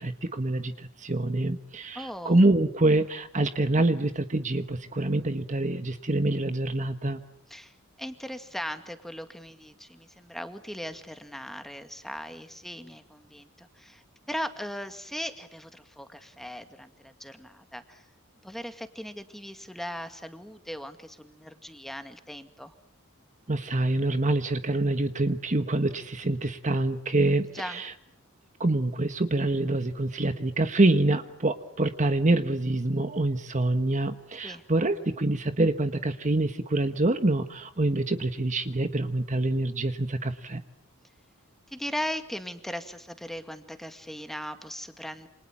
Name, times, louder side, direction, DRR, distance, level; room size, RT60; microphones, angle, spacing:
voice 1, 0.0-7.2 23.5-27.9 28.6-40.6, right 2 dB, 35° right, 9 dB, 1.4 m, -26 dB
voice 2, 1.9-2.4 7.5-18.1 18.4-22.8 27.5-27.8 34.4-34.6 41.7-45.3, equal, ahead, 8 dB, 2.1 m, -38 dB
29.0 x 27.0 x 7.3 m, 0.65 s
head